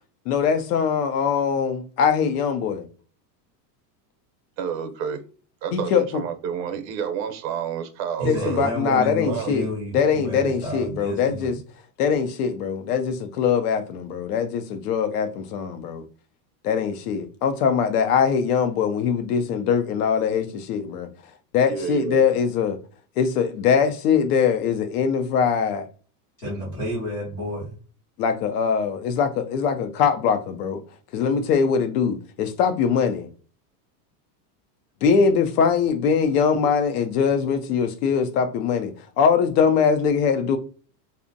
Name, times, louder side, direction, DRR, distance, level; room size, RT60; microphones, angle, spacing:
voice 1, 0.3-2.9 5.7-6.2 8.3-9.7 9.9-11.5 12.0-16.0 16.6-21.1 21.5-22.8 23.2-25.9 28.2-30.8 31.1-33.3 35.0-40.6, left 6 dB, 70° left, 0.5 m, -22 dB
voice 2, 4.6-5.2 5.6-9.5 21.7-22.2, right 8 dB, 85° right, 0.7 m, -30 dB
voice 3, 8.2-11.5 26.4-27.7, equal, 15° left, 0.3 m, -30 dB
2.5 x 2.1 x 2.5 m
supercardioid pair, 170°, 50 cm